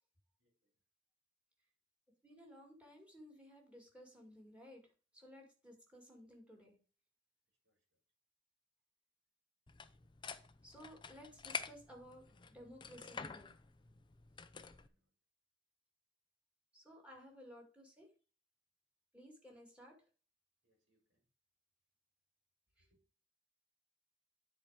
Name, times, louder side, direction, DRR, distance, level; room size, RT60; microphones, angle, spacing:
voice 1, 0.4-0.7 7.6-8.0 14.4-15.1 20.6-21.3 22.8-23.0, right 1 dB, 60° right, 4.4 m, -81 dB
voice 2, 2.2-4.8 5.1-6.8 10.6-13.5 16.7-18.1 19.1-20.0 22.8-22.9, equal, 5° right, 2.3 m, -57 dB
sound 1, 9.7-14.9, left 5 dB, 25° left, 0.5 m, -48 dB
9.9 x 4.6 x 4.9 m
head